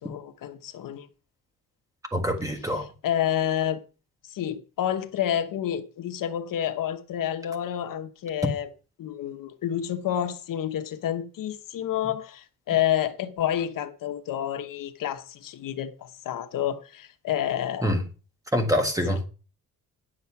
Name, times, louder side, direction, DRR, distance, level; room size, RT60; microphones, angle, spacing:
voice 1, 0.0-1.1 3.0-3.8 4.3-8.7 9.0-18.0 19.1-19.3, left 10 dB, 70° left, 1.0 m, -29 dB
voice 2, 2.1-2.9 17.8-18.0 18.5-19.2, equal, 10° right, 1.5 m, -25 dB
10.0 x 6.7 x 5.8 m
wide cardioid pair, 170°, 34 cm